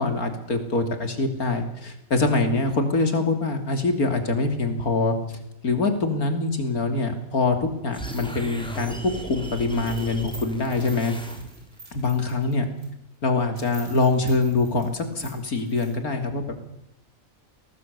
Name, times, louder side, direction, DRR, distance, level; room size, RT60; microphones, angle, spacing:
voice 1, 0.0-5.2 5.6-11.1 11.9-12.7 13.2-16.5, left 3 dB, 90° left, 7 dB, 3.4 m, -24 dB
sound 1, 7.9-11.8, equal, 5° left, 3.5 m, -37 dB
sound 2, 9.7-12.9 13.2-13.3 13.5-15.9, right 2 dB, 80° right, 7.1 m, -47 dB
22.0 x 19.0 x 8.3 m, 0.81 s
omnidirectional pair, 1.5 m